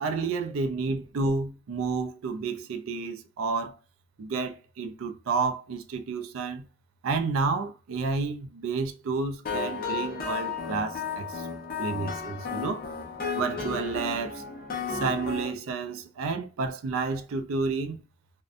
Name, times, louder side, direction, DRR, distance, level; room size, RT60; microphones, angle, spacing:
voice 1, 0.0-3.8 4.2-6.7 7.0-11.5 11.8-12.9 13.3-14.5 14.9-18.0, right 4 dB, 75° right, 0.4 m, -30 dB
sound 1, 9.5-15.5, left 5 dB, 45° left, 0.6 m, -33 dB
2.6 x 2.1 x 2.4 m
head